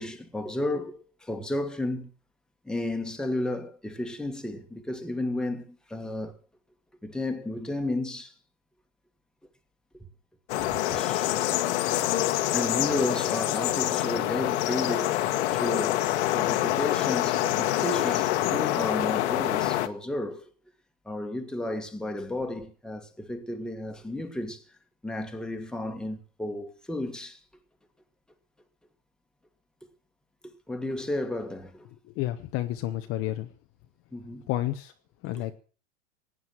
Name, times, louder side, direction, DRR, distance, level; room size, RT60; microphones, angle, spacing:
voice 1, 0.0-2.1 2.6-6.4 7.0-8.3 9.9-10.1 10.7-11.6 12.5-15.2 15.5-16.0 16.3-20.5 21.0-24.6 25.0-27.4 30.4-31.8 34.1-34.5 35.4-35.5, left 1 dB, ahead, 1.7 m, -33 dB
sound 1, 10.5-19.9, left 14 dB, 60° left, 1.5 m, -26 dB
voice 2, 32.1-33.5 34.5-34.9 35.2-35.5, left 15 dB, 35° left, 1.0 m, -30 dB
17.5 x 9.3 x 7.5 m
hypercardioid pair, 135°, 39 cm